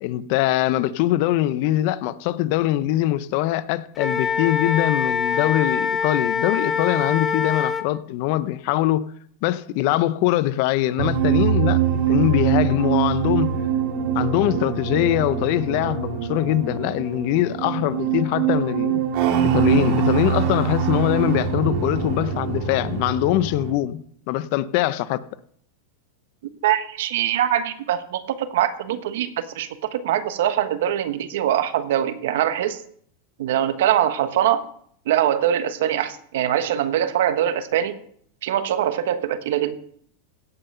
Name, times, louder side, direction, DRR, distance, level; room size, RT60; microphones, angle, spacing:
voice 1, 0.0-9.0 9.4-11.8 12.1-13.5 14.1-19.0 19.4-24.0 24.3-25.2, left 14 dB, 55° left, 0.7 m, -22 dB
Wind instrument woodwind instrument, 4.0-7.9, left 6 dB, 20° left, 1.1 m, -24 dB
sound 1, 11.0-23.7, right 8 dB, 55° right, 2.0 m, -23 dB
voice 2, 26.6-32.8 33.4-34.6 35.1-38.0 38.4-39.8, right 11 dB, 75° right, 1.2 m, -23 dB
16.5 x 5.6 x 5.6 m
hypercardioid pair, 120°, 0 cm